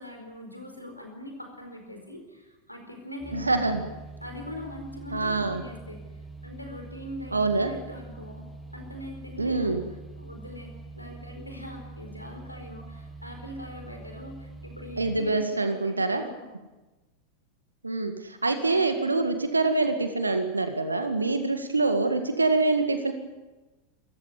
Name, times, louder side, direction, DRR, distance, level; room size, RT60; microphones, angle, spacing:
voice 1, 0.0-3.8 4.2-6.0 6.4-8.5 8.7-9.8 10.2-16.5 18.6-18.9, left 1 dB, 90° left, 4 dB, 4.5 m, -42 dB
sound 1, 3.2-15.2, right 3 dB, 5° left, 4.5 m, -44 dB
voice 2, 3.3-3.8 5.1-5.6 7.3-7.7 9.4-9.8 15.0-16.2 17.8-23.1, right 3 dB, 80° right, 8 dB, 1.9 m, -25 dB
27.0 x 15.5 x 9.6 m, 1.1 s
figure-of-eight pair, 90°, 0 cm